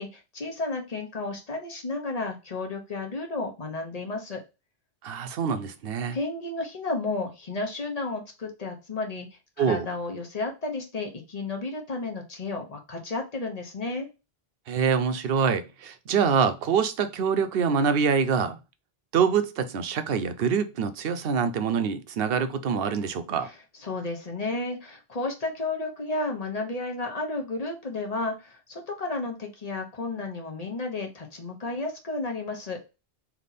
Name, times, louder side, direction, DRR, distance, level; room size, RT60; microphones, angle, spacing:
voice 1, 0.0-4.4 6.1-9.3 9.6-14.1 23.4-32.9, left 3 dB, 40° left, 1.1 m, -32 dB
voice 2, 5.0-6.2 9.6-9.9 14.7-18.6 19.1-23.5, right 6 dB, 70° right, 0.8 m, -25 dB
3.4 x 2.9 x 4.0 m
omnidirectional pair, 1.0 m